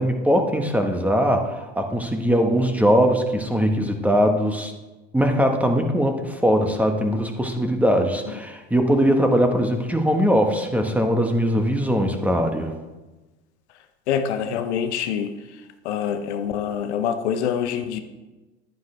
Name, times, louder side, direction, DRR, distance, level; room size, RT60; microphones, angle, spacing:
voice 1, 0.0-4.7 5.1-12.7, equal, 5° right, 4 dB, 1.2 m, -21 dB
voice 2, 14.1-15.3 15.8-18.0, left 8 dB, 85° left, 9 dB, 0.9 m, -25 dB
11.0 x 9.4 x 3.3 m, 1.1 s
hypercardioid pair, 85°, 33 cm